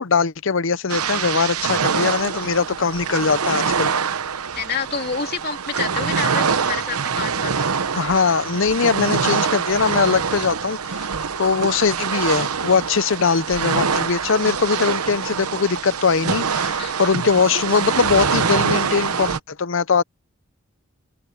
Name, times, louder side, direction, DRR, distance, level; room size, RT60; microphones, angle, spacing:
voice 1, 0.0-3.9 8.0-11.1 11.4-20.0, left 5 dB, 60° left, 0.6 m, -21 dB
sound 1, 0.9-19.4, right 6 dB, 90° right, 1.0 m, -24 dB
voice 2, 4.5-7.7 16.7-16.9, left 5 dB, 45° left, 3.3 m, -28 dB
open air
head